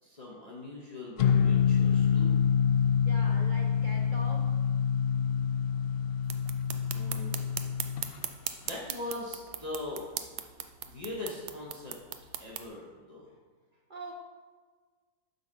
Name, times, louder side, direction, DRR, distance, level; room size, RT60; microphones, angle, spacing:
voice 1, 0.0-2.4 6.9-7.5 8.6-10.1 10.8-12.0 12.4-13.3, left 2 dB, 30° left, -4 dB, 0.9 m, -41 dB
sound 1, 1.2-8.0, left 7 dB, 90° left, 0.5 m, -26 dB
voice 2, 3.0-4.6 13.9-14.1, right 1 dB, 50° right, 0 dB, 0.6 m, -43 dB
sound 2, 6.2-12.7, right 11 dB, 90° right, 1.1 m, -40 dB
7.9 x 4.0 x 5.5 m, 1.5 s
omnidirectional pair, 1.6 m